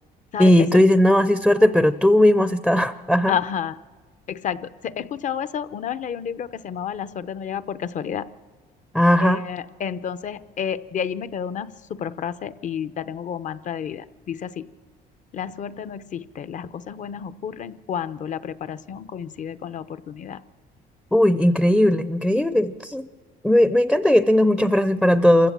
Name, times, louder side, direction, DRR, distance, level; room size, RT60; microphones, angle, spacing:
voice 1, 0.4-3.4 8.9-9.4 21.1-23.1 23.4-25.5, left 1 dB, 5° left, 11 dB, 0.5 m, -17 dB
voice 2, 3.3-3.7 4.3-8.2 9.2-14.7 15.3-20.4, left 8 dB, 45° left, 14 dB, 0.7 m, -30 dB
27.5 x 15.5 x 7.4 m, 1.5 s
cardioid pair, 110°, 17 cm